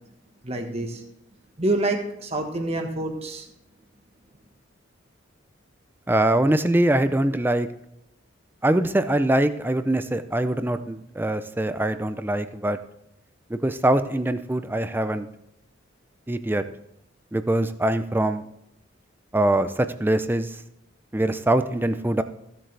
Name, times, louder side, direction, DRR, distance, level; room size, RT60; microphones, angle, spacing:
voice 1, 0.4-1.0 1.6-3.5, right 2 dB, 30° right, 3 dB, 1.4 m, -27 dB
voice 2, 6.1-7.7 8.6-12.8 13.5-15.3 16.3-16.6 17.3-18.4 19.3-20.5 21.1-22.2, right 1 dB, 10° right, 11 dB, 0.5 m, -23 dB
15.5 x 7.5 x 3.3 m, 0.82 s
head